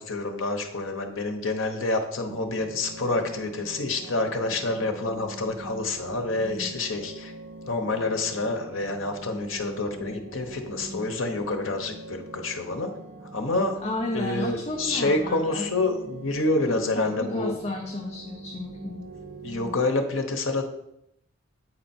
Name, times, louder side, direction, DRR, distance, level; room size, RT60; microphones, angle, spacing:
voice 1, 0.0-7.3 7.7-12.9 13.3-13.8 14.1-17.5 19.4-20.6, left 2 dB, 70° left, 5 dB, 1.1 m, -28 dB
sound 1, 2.3-19.7, right 2 dB, 70° right, 1.0 m, -42 dB
voice 2, 13.8-15.7 16.7-19.1, left 2 dB, 30° left, -1 dB, 0.8 m, -33 dB
8.6 x 4.4 x 4.4 m, 0.78 s
head